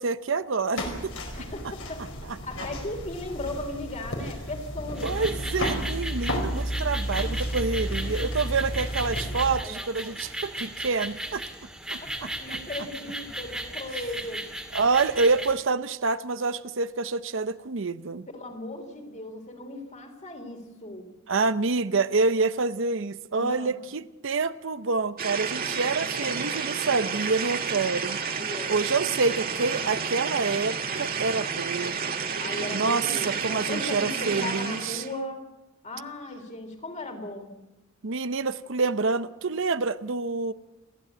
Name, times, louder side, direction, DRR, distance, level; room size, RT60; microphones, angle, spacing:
voice 1, 0.0-1.1 5.0-11.4 11.9-12.3 14.7-18.3 21.3-28.2 28.7-32.0 32.7-35.0 38.0-40.5, right 4 dB, 65° right, 0.7 m, -27 dB
sound 1, 0.8-9.6, equal, 70° left, 4.8 m, -32 dB
voice 2, 1.3-2.1 2.4-5.3 8.8-8.9 9.3-9.4 12.0-14.5 18.3-21.0 23.3-23.8 28.2-28.8 32.4-35.4 35.8-37.5, left 2 dB, 35° left, 3.5 m, -37 dB
sound 2, 4.9-15.5, right 1 dB, 5° right, 2.1 m, -36 dB
sound 3, 25.2-35.2, right 6 dB, 45° right, 1.9 m, -31 dB
29.0 x 12.0 x 8.7 m
head